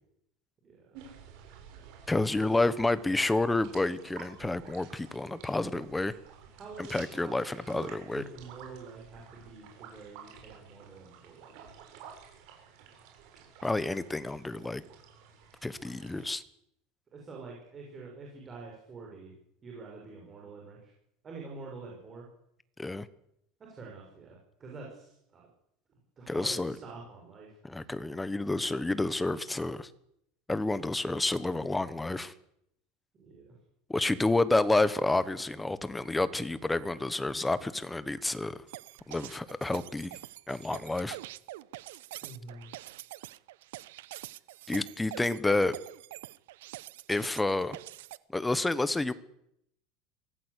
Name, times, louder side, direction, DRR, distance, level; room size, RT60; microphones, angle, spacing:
voice 1, 0.6-1.0 6.5-11.6 17.1-19.3 19.6-20.9 21.2-22.3 23.6-25.5 26.2-27.9 33.1-33.5 42.2-42.7, right 4 dB, 20° right, -1 dB, 6.2 m, -47 dB
sound 1, 0.9-16.3, right 7 dB, 55° right, 7.3 m, -52 dB
voice 2, 2.1-6.1 6.8-8.2 13.6-14.8 15.6-16.4 22.8-23.1 26.3-26.8 27.6-29.9 30.5-32.3 33.9-38.6 39.1-40.2 40.5-41.2 44.7-45.8 47.1-47.8 48.3-49.1, left 2 dB, 5° left, 15 dB, 1.2 m, -29 dB
sound 2, 38.7-48.2, right 16 dB, 90° right, 0.9 m, -45 dB
24.5 x 17.5 x 8.3 m, 0.77 s
supercardioid pair, 155°, 0 cm